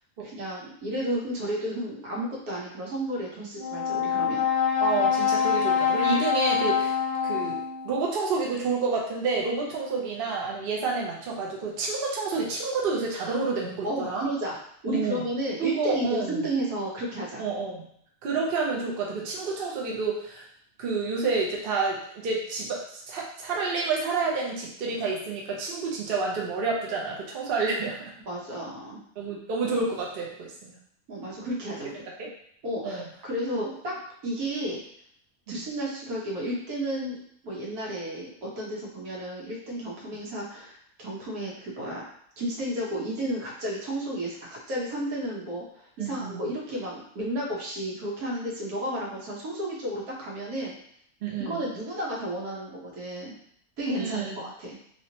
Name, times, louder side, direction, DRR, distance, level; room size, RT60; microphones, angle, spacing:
voice 1, 0.3-4.5 13.3-13.4 13.8-17.4 28.2-29.0 31.1-31.9 32.6-34.8 35.5-37.2 37.4-42.0 42.4-50.7 51.4-53.3 53.8-54.8, right 1 dB, 85° right, -4 dB, 1.5 m, -32 dB
Brass instrument, 3.6-8.0, left 7 dB, 45° left, 0.7 m, -25 dB
voice 2, 4.8-7.0 7.2-14.3 14.9-15.2 15.6-16.4 17.4-17.9 18.2-20.4 20.8-28.0 29.2-30.8 32.2-32.3 32.8-33.1 33.6-33.7 35.5-35.6 46.0-46.5 51.2-51.6 54.0-54.4, right 4 dB, 50° right, -2 dB, 0.8 m, -29 dB
3.2 x 3.0 x 2.8 m, 0.66 s
omnidirectional pair, 1.5 m